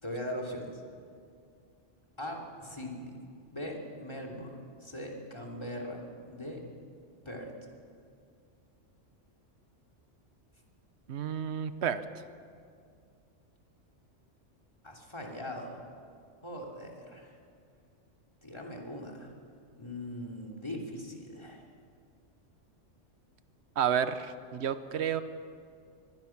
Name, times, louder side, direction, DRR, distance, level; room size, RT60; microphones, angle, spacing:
voice 1, 0.0-0.8 2.2-3.2 3.5-6.6 7.2-7.5 14.8-15.8 16.4-17.4 18.4-19.3 19.7-21.7, equal, 20° left, 1 dB, 3.1 m, -40 dB
voice 2, 11.1-12.2 23.8-25.2, right 8 dB, 65° right, 12 dB, 1.1 m, -31 dB
24.0 x 20.5 x 6.0 m, 2.2 s
omnidirectional pair, 1.3 m